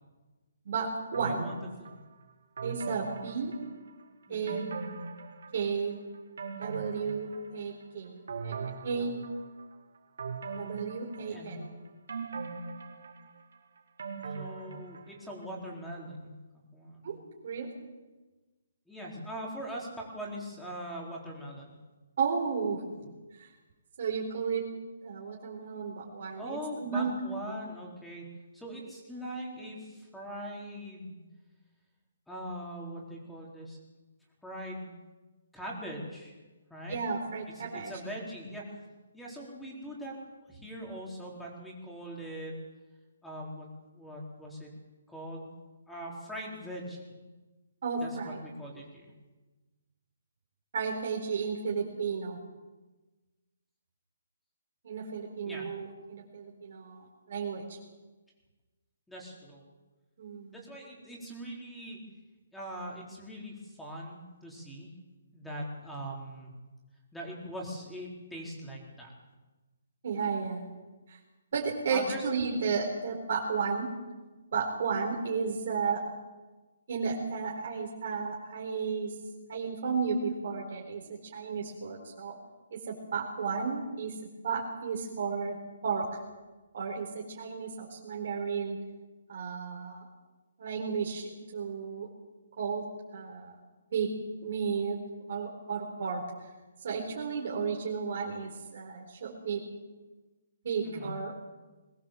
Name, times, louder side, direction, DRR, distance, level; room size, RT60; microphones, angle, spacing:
voice 1, 0.7-1.5 2.6-3.6 4.3-4.7 5.5-6.0 6.6-7.3 7.5-8.6 8.8-9.2 10.6-11.7 17.0-17.2 17.4-17.7 22.2-22.8 23.4-23.5 24.0-24.6 25.0-26.4 26.8-27.1 36.9-37.9 47.8-48.4 50.7-52.4 54.8-57.8 60.2-60.5 70.0-70.6 71.1-71.2 71.5-73.9 74.5-76.0 76.9-79.1 79.5-81.0 81.3-82.4 82.7-84.1 84.4-85.6 85.8-86.1 86.7-88.8 89.3-90.0 90.6-92.1 92.6-92.8 93.1-93.5 93.9-94.1 94.4-95.0 95.3-96.2 96.8-99.6 100.6-101.4, right 5 dB, 50° right, -1 dB, 4.0 m, -33 dB
sound 1, 1.1-1.9 2.6-4.0 4.5-5.8 6.1-7.8 8.3-9.6 10.2-11.6 12.1-15.3 15.7-15.8, right 5 dB, 70° right, 4.2 m, -40 dB
voice 2, 1.2-1.9 4.3-4.7 11.3-11.6 14.3-16.3 16.7-17.2 18.9-21.8 26.4-28.2 28.5-31.1 32.3-33.8 34.4-34.9 35.5-36.3 36.7-37.0 37.6-38.8 39.1-40.2 40.5-42.5 43.2-43.7 43.9-44.7 45.1-45.6 45.9-47.1 48.0-49.1 55.4-55.7 59.1-59.6 60.5-62.0 62.5-64.9 65.3-66.5 67.1-69.1 71.9-72.2 72.5-72.7 100.8-101.1, equal, 5° left, -2 dB, 4.0 m, -41 dB
22.0 x 18.5 x 7.5 m, 1.2 s
hypercardioid pair, 170°, 0 cm